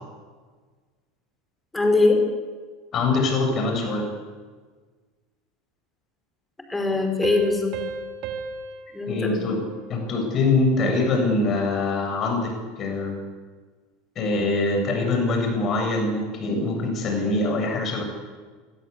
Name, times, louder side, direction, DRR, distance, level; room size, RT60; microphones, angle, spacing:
voice 1, 1.7-2.3 6.7-7.7 8.9-9.5, left 3 dB, 10° left, 5 dB, 5.6 m, -21 dB
voice 2, 2.9-4.1 9.1-9.6 9.9-13.2 14.2-18.0, left 3 dB, 35° left, 3 dB, 7.8 m, -23 dB
Piano, 7.2-10.5, right 5 dB, 50° right, 2.7 m, -36 dB
25.5 x 21.0 x 8.6 m, 1.5 s
figure-of-eight pair, 75°, 0 cm